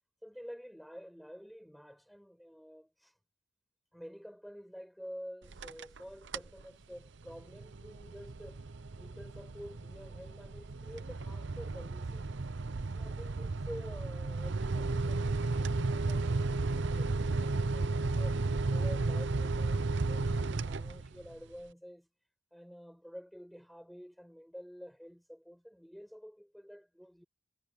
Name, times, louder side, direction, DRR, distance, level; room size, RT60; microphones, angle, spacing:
voice 1, 0.2-3.1 3.9-8.6 9.0-12.3 12.9-18.4 18.7-22.1 22.5-27.2, equal, ahead, 7.4 m, -49 dB
sound 1, 5.4-6.0 6.3-6.6 7.1-21.3, right 3 dB, 60° right, 0.7 m, -33 dB
head